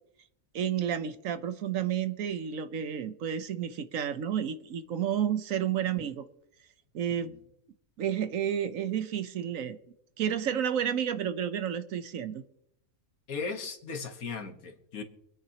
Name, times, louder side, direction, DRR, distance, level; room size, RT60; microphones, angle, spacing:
voice 1, 0.5-6.3 6.9-7.3 8.0-9.8 10.2-12.4, right 9 dB, 70° right, 1.2 m, -31 dB
voice 2, 13.3-15.0, left 5 dB, 75° left, 1.8 m, -37 dB
25.0 x 8.9 x 2.9 m
omnidirectional pair, 1.5 m